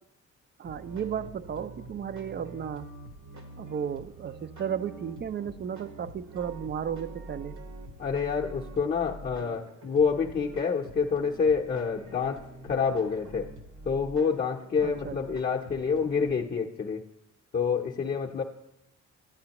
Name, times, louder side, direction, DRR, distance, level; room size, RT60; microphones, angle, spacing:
voice 1, 0.6-2.9 3.6-7.6 14.8-15.4, right 8 dB, 35° right, 13 dB, 0.4 m, -34 dB
sound 1, 0.6-16.3, right 1 dB, 70° right, 1.6 m, -46 dB
voice 2, 8.0-13.5 13.9-17.0 17.5-18.4, left 5 dB, 30° left, -3 dB, 0.7 m, -27 dB
12.0 x 8.6 x 2.9 m, 0.94 s
cardioid pair, 90°, 30 cm